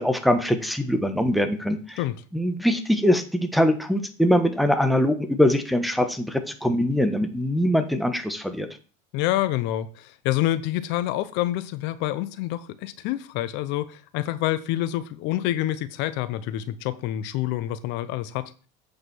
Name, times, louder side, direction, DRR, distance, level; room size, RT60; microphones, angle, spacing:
voice 1, 0.0-2.0 2.3-8.7, equal, ahead, 1.2 m, -22 dB
voice 2, 9.1-18.5, left 14 dB, 70° left, 0.8 m, -27 dB
8.5 x 5.0 x 6.2 m
supercardioid pair, 110°, 19 cm